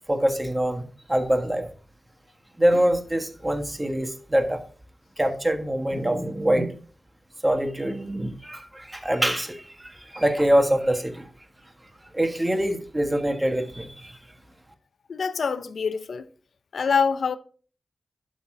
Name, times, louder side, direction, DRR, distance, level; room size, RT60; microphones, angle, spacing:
voice 1, 0.1-1.7 2.6-4.6 5.2-6.8 7.4-11.3 12.1-14.2, right 1 dB, 15° right, 1.5 m, -24 dB
voice 2, 15.1-16.3 16.7-17.4, left 5 dB, 85° left, 0.7 m, -25 dB
12.0 x 4.1 x 4.9 m
wide cardioid pair, 90°, 0 cm